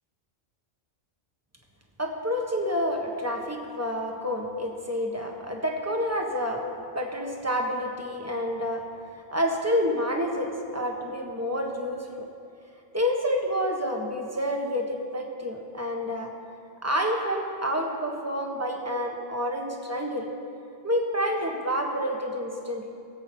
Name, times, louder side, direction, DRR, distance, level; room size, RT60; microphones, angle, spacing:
voice 1, 2.0-6.6 6.9-8.8 9.3-12.1 12.9-16.3 16.8-20.3 20.8-22.9, equal, 15° right, 0 dB, 1.4 m, -28 dB
21.0 x 7.8 x 4.6 m, 2.4 s
omnidirectional pair, 1.0 m